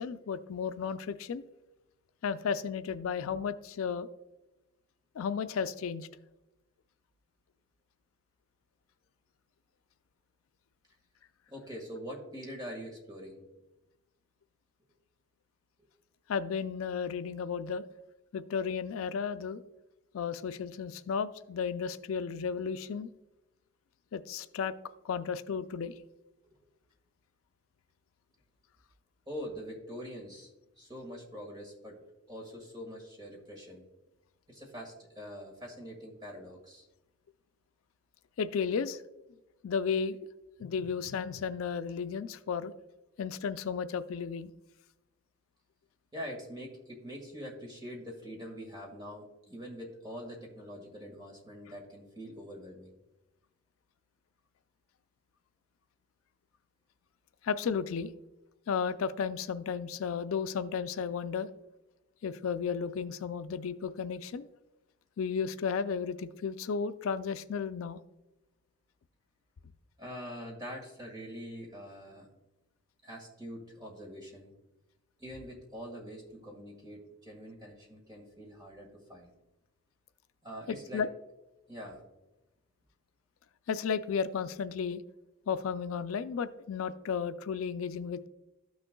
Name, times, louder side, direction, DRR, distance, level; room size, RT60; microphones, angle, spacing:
voice 1, 0.0-1.4 2.2-4.1 5.2-6.1 16.3-17.8 18.3-19.6 20.1-23.1 24.1-24.7 25.0-25.9 38.4-39.0 39.6-40.2 40.6-42.7 43.2-44.5 57.4-58.1 58.7-61.5 62.2-64.5 65.2-68.0 80.7-81.1 83.7-85.0 85.5-88.3, left 6 dB, 85° left, 12 dB, 0.4 m, -33 dB
voice 2, 11.5-13.4 26.4-26.5 29.3-30.5 30.8-32.0 32.3-33.8 34.5-36.9 46.1-52.9 70.0-72.3 73.0-74.5 75.2-79.3 80.4-81.0 81.7-82.0, equal, 20° right, 0 dB, 1.7 m, -44 dB
13.0 x 6.3 x 2.3 m, 0.98 s
head